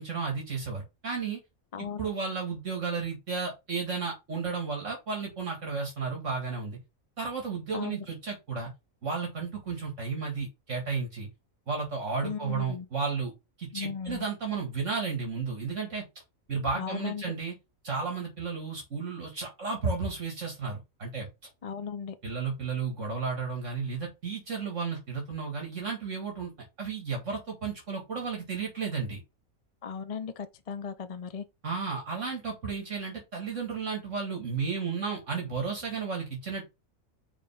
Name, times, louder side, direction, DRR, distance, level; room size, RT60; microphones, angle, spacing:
voice 1, 0.0-1.4 1.8-6.8 7.2-8.7 9.0-11.3 11.7-13.3 13.6-16.0 16.5-17.6 17.8-21.3 22.2-26.5 26.8-29.2 31.6-36.6, right 5 dB, 60° right, 2.3 m, -33 dB
voice 2, 7.7-8.1 12.2-12.9 13.7-14.3 16.8-17.2 21.6-22.2 29.8-31.4, left 6 dB, 40° left, 0.5 m, -36 dB
5.2 x 4.2 x 5.6 m
omnidirectional pair, 1.4 m